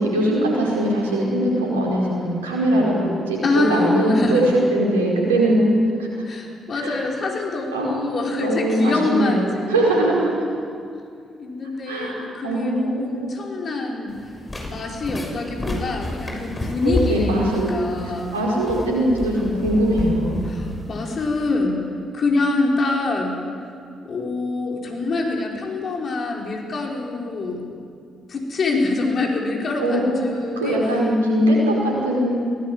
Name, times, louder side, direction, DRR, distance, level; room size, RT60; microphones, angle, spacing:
voice 1, 0.0-5.6 6.0-6.1 6.7-7.0 7.7-10.3 11.9-13.3 16.8-20.4 29.8-32.4, right 1 dB, 90° right, -3 dB, 5.0 m, -21 dB
voice 2, 3.4-4.5 6.3-9.9 11.4-14.1 14.7-18.4 20.5-21.8 22.1-23.4 24.0-27.7 28.3-30.8, left 3 dB, 55° left, 0 dB, 5.3 m, -25 dB
sound 1, 14.1-21.5, left 1 dB, 30° left, 6.6 m, -30 dB
23.0 x 19.0 x 8.9 m, 2.3 s
hypercardioid pair, 40°, 0 cm